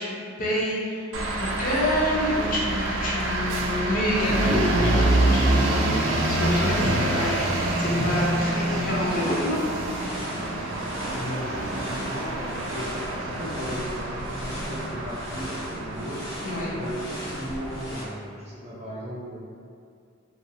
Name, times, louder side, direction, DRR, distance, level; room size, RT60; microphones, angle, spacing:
voice 1, 0.0-5.9 6.3-9.6 16.4-16.7, left 1 dB, 45° left, -6 dB, 0.6 m, -27 dB
sound 1, 1.1-18.1, right 1 dB, 85° right, 0.4 m, -27 dB
sound 2, 9.1-18.0, equal, 75° left, 0.8 m, -41 dB
voice 2, 11.1-13.0 13.2-16.3 16.6-19.6, equal, 35° right, -6 dB, 0.5 m, -36 dB
2.4 x 2.2 x 2.7 m, 2.2 s
head